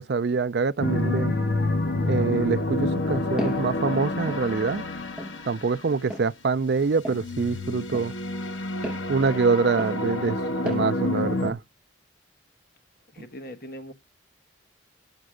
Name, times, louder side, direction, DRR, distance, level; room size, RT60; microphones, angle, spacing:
voice 1, 0.0-1.4 2.0-4.8 5.4-8.1 9.1-10.4 10.6-11.6, right 4 dB, 55° right, 0.4 m, -25 dB
sound 1, 0.8-6.1 7.1-11.5, left 2 dB, 75° left, 1.1 m, -28 dB
Walk footsteps, 3.4-3.7 4.3-4.4 5.2-5.4 6.1-6.3 7.0-7.2 7.9-8.1 8.8-9.0 9.8-10.0 10.7-10.8, equal, ahead, 6.2 m, -32 dB
voice 2, 13.1-13.9, equal, 50° left, 1.3 m, -40 dB
7.7 x 7.3 x 4.9 m
head